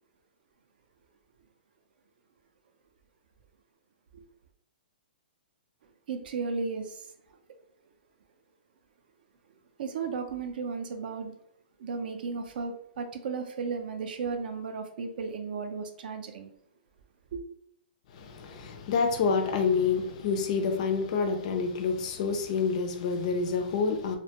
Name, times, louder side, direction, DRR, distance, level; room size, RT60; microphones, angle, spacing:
voice 1, 6.1-7.1 9.8-11.3 11.8-16.5 17.3-17.4, right 5 dB, 55° right, 0.4 m, -34 dB
voice 2, 18.1-24.2, left 5 dB, 40° left, 0.3 m, -28 dB
2.5 x 2.2 x 2.7 m
hypercardioid pair, 165°, 6 cm